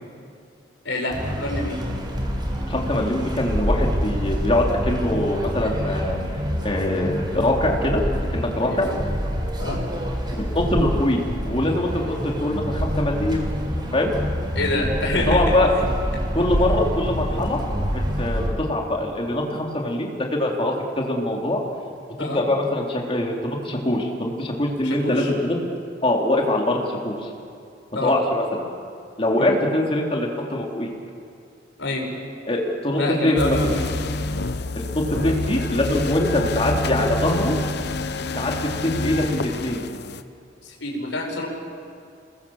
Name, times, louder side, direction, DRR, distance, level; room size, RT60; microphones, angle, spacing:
voice 1, 0.8-1.8 8.7-9.0 9.6-9.8 14.5-15.8 16.1-16.2 22.2-22.4 24.8-25.3 27.9-28.1 29.4-29.5 31.8-32.1 32.9-33.8 35.2-35.3 38.2-38.4 40.6-41.5, left 1 dB, 80° left, 1 dB, 5.6 m, -27 dB
sound 1, 1.1-18.5, equal, 25° right, 4.0 m, -26 dB
voice 2, 2.7-6.2 6.6-8.0 8.3-8.9 10.3-13.5 13.9-14.1 15.3-15.7 16.3-17.6 18.2-21.6 22.3-25.6 26.0-27.3 28.0-28.6 29.2-30.9 32.5-33.8 34.8-37.6 38.4-39.8, left 1 dB, 30° left, 0 dB, 3.6 m, -23 dB
sound 2, 33.4-40.2, left 2 dB, 60° left, 1.0 m, -27 dB
29.0 x 21.0 x 7.4 m, 2.4 s
head